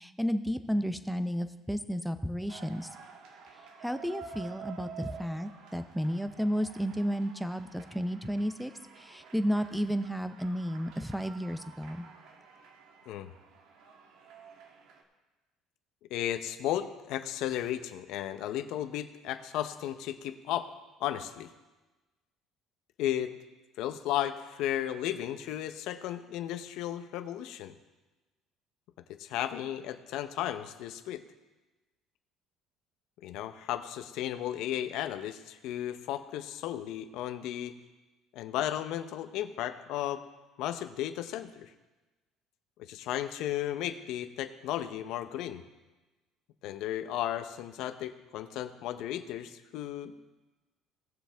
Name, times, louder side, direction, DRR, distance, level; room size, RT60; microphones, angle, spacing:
voice 1, 0.0-2.9 3.8-12.0, equal, ahead, 11 dB, 0.6 m, -32 dB
sound 1, 2.5-15.0, right 6 dB, 75° right, 1.4 m, -50 dB
voice 2, 16.1-20.7 21.0-21.5 23.0-23.3 23.8-27.8 29.1-31.2 33.2-37.8 38.3-40.2 40.6-41.7 42.8-45.6 46.6-50.3, left 12 dB, 70° left, 10 dB, 0.7 m, -34 dB
17.5 x 7.3 x 3.4 m, 1.2 s
cardioid pair, 120°, 0 cm